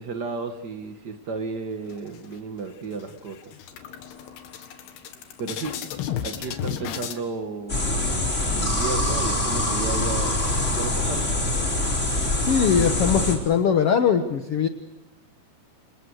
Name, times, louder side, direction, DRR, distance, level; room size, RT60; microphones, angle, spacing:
voice 1, 0.0-3.4 4.0-4.1 5.4-5.8 6.2-11.3, right 4 dB, 70° right, 6 dB, 0.9 m, -33 dB
sound 1, 1.9-2.6 3.0-3.1 3.4-7.2, left 9 dB, 85° left, 3.7 m, -34 dB
sound 2, 7.7-13.4, left 1 dB, 20° left, 4.6 m, -24 dB
voice 2, 12.5-14.7, left 7 dB, 70° left, 7 dB, 1.4 m, -21 dB
29.5 x 27.5 x 6.5 m, 0.96 s
omnidirectional pair, 4.5 m